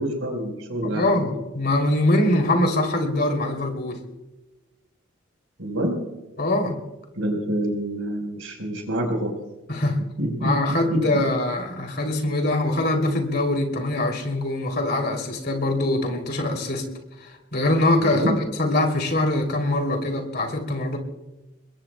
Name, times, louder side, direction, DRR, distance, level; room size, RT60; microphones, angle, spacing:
voice 1, 0.0-1.2 5.6-6.0 7.2-9.4 10.2-11.2 18.0-18.4, right 1 dB, 90° right, 3 dB, 4.5 m, -26 dB
voice 2, 0.8-4.0 6.4-6.8 9.7-10.0 10.4-16.9 17.2-21.0, left 1 dB, 50° left, 3 dB, 2.9 m, -23 dB
30.0 x 21.5 x 2.3 m, 0.99 s
head